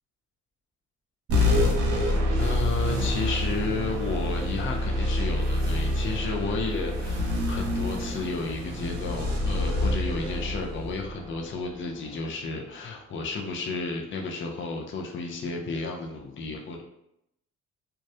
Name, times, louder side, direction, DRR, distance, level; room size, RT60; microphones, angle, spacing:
sound 1, 1.3-12.1, left 1 dB, 70° right, 0.7 m, -27 dB
voice 1, 1.4-1.7 2.4-16.8, left 3 dB, 40° left, 1 dB, 0.5 m, -32 dB
2.3 x 2.0 x 2.7 m, 0.80 s
cardioid pair, 90°, 30 cm